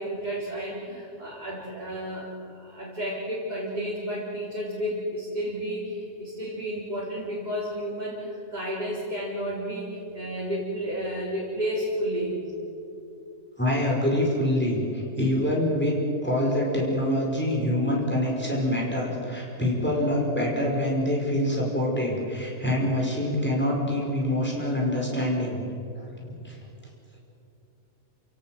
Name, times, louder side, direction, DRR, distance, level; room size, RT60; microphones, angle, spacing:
voice 1, 0.0-12.4, equal, 30° right, -6 dB, 4.3 m, -32 dB
voice 2, 13.6-15.9 16.2-25.6 26.4-26.5, left 1 dB, 10° left, -3 dB, 5.3 m, -25 dB
29.5 x 17.0 x 7.9 m, 2.8 s
omnidirectional pair, 1.4 m